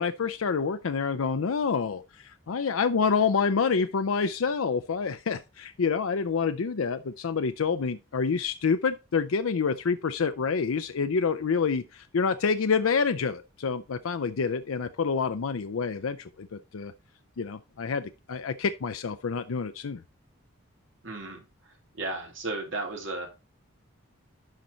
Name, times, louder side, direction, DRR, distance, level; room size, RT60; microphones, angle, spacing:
voice 1, 0.0-16.9 17.4-20.0, left 5 dB, 85° left, 0.5 m, -27 dB
voice 2, 21.0-21.4 21.7-23.3, right 2 dB, 65° right, 2.7 m, -34 dB
11.5 x 4.4 x 3.9 m
head